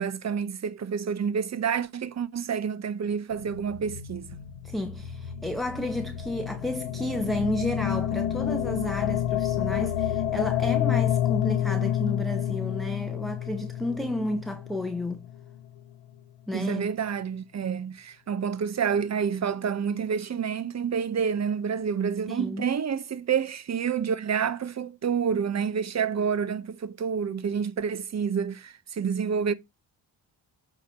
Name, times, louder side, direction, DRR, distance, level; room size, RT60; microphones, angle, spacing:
voice 1, 0.0-4.3 16.5-29.5, right 7 dB, 35° right, 0.8 m, -28 dB
sound 1, 3.3-15.6, left 11 dB, 75° left, 0.8 m, -29 dB
voice 2, 4.6-15.3 16.5-16.9 22.3-22.6, left 1 dB, ahead, 0.8 m, -32 dB
8.1 x 3.1 x 5.5 m
hypercardioid pair, 50°, 50 cm